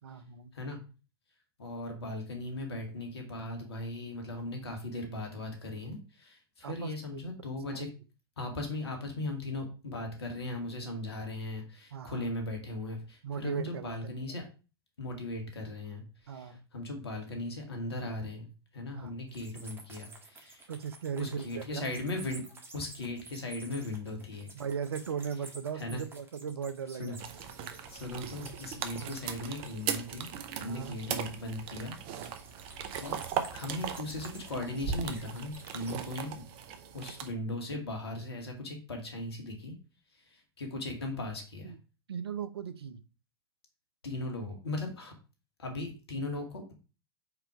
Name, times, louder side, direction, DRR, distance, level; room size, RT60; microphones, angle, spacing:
voice 1, 0.0-0.5 6.6-7.3 7.7-7.9 11.9-12.3 13.2-14.0 16.3-16.6 19.0-19.1 20.7-21.9 24.5-27.2 28.9-29.2 30.7-31.0 41.6-41.8 42.1-43.0, right 7 dB, 75° right, 13 dB, 0.7 m, -38 dB
voice 2, 1.6-7.9 8.4-14.4 15.0-18.5 18.7-20.6 21.2-22.4 22.7-24.5 25.8-26.0 27.0-27.2 27.9-30.3 30.6-32.3 33.0-33.2 33.5-36.4 36.9-39.7 40.2-41.7 44.0-45.1 45.6-46.7, left 2 dB, 75° left, 3 dB, 2.1 m, -38 dB
sound 1, 19.3-30.6 32.2-36.1, right 3 dB, 15° right, 1.6 m, -52 dB
sound 2, 27.2-37.3, right 8 dB, 45° right, 0.9 m, -38 dB
5.0 x 4.5 x 4.7 m, 0.33 s
figure-of-eight pair, 95°, 13 cm